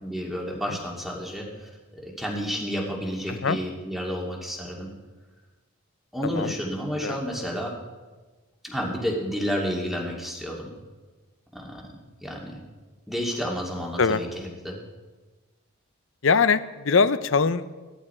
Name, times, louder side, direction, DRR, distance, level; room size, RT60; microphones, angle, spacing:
voice 1, 0.0-4.9 6.1-7.7 8.6-10.7 11.5-11.8 12.2-12.6 13.1-14.8, equal, ahead, -2 dB, 2.3 m, -31 dB
voice 2, 6.2-6.5 7.0-7.2 14.0-14.2 16.2-17.7, left 5 dB, 70° left, 14 dB, 0.7 m, -22 dB
17.0 x 13.0 x 4.4 m, 1.3 s
head